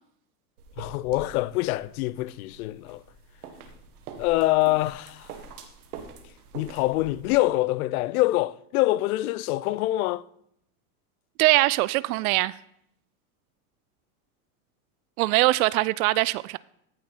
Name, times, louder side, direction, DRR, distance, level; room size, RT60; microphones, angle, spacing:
sound 1, 0.6-7.3, right 5 dB, 85° right, 1.7 m, -45 dB
voice 1, 0.8-3.0 4.2-5.3 6.5-10.2, left 18 dB, 70° left, 0.6 m, -25 dB
voice 2, 11.4-12.6 15.2-16.6, right 19 dB, 70° right, 0.5 m, -22 dB
14.5 x 6.5 x 4.2 m
hypercardioid pair, 100°, 44 cm